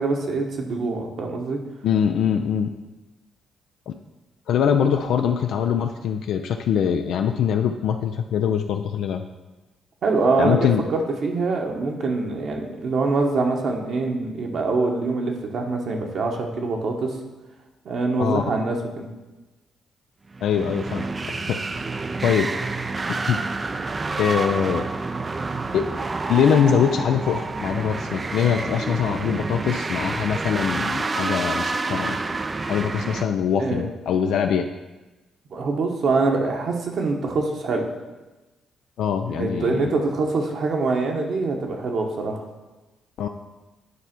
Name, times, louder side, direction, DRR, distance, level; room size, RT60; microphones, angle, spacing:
voice 1, 0.0-1.6 10.0-17.2 17.8-19.1 33.6-33.9 35.5-37.9 39.3-42.5, right 3 dB, 60° right, 1 dB, 1.2 m, -24 dB
voice 2, 1.8-2.7 3.9-4.0 4.5-9.2 10.4-10.8 18.2-18.4 20.4-21.1 21.5-21.6 22.2-22.5 23.3-23.4 24.2-24.9 25.7-25.9 26.3-32.2 32.7-34.7 39.0-39.9 43.2-43.3, left 8 dB, 75° left, 5 dB, 0.4 m, -23 dB
sound 1, 20.3-33.2, right 3 dB, 25° right, 0.4 m, -28 dB
9.5 x 3.4 x 6.0 m, 1.1 s
cardioid pair, 90°, 0 cm